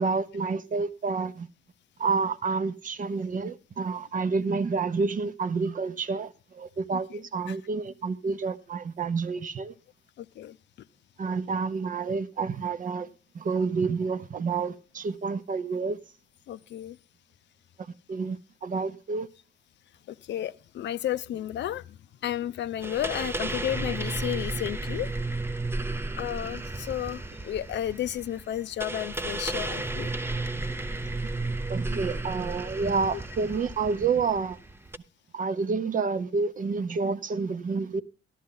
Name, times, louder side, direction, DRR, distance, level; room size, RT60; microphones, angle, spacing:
voice 1, 0.0-1.5 2.0-9.7 11.2-13.1 13.3-16.0 18.1-19.3 30.6-30.7 31.7-34.6 35.3-38.0, right 4 dB, 40° right, 0.8 m, -29 dB
voice 2, 10.2-10.6 16.5-17.0 20.1-22.0 22.2-25.1 26.1-30.1, left 11 dB, 65° left, 0.5 m, -32 dB
sound 1, 22.8-35.0, right 2 dB, 10° right, 0.6 m, -33 dB
13.5 x 11.0 x 3.8 m
cardioid pair, 90°, 20 cm